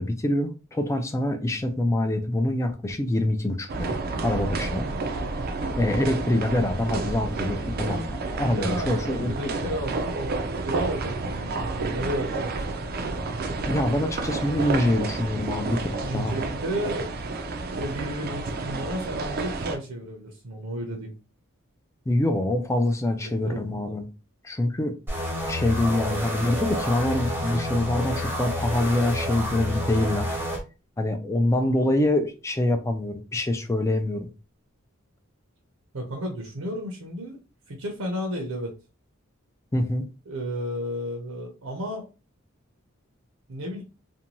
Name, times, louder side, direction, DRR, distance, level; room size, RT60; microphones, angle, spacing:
voice 1, 0.0-4.9 5.8-9.8 13.7-15.8 16.1-16.4 22.1-24.1 24.4-24.9 25.5-30.4 31.0-34.3 39.7-40.1, left 1 dB, 15° left, 0.4 m, -25 dB
sound 1, 3.7-19.8, right 3 dB, 45° right, 0.4 m, -30 dB
voice 2, 8.5-12.5 16.0-17.1 17.7-21.1 23.2-23.9 35.9-37.4 37.7-38.7 40.3-42.1 43.5-43.8, equal, 80° right, 0.7 m, -33 dB
sound 2, 25.1-30.6, left 1 dB, 10° right, 0.7 m, -29 dB
2.6 x 2.2 x 2.9 m
head